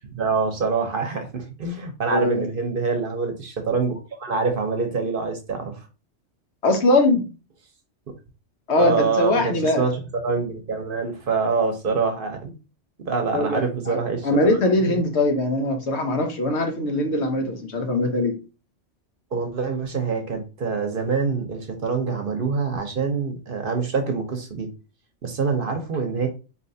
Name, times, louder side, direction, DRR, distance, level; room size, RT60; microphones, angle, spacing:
voice 1, 0.0-5.8 8.8-12.6 13.1-14.3 14.8-15.2 19.3-24.7 25.2-26.3, right 4 dB, 50° right, 0.9 m, -25 dB
voice 2, 2.1-2.4 6.6-7.3 8.7-9.9 13.3-18.4, left 2 dB, 65° left, 1.1 m, -21 dB
4.4 x 3.3 x 2.7 m
omnidirectional pair, 1.2 m